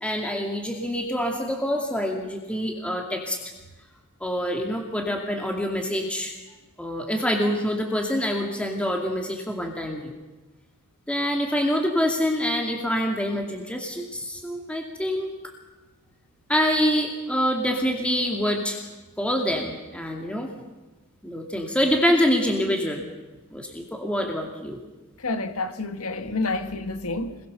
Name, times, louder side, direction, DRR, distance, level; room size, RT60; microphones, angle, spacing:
voice 1, 0.0-3.4 4.2-6.3 6.8-10.1 11.1-15.5 16.5-18.8 19.2-20.5 21.2-23.0 23.5-24.8, equal, 5° left, 2.5 m, -26 dB
voice 2, 25.2-27.4, left 3 dB, 75° left, 1.9 m, -29 dB
26.5 x 22.0 x 6.9 m
head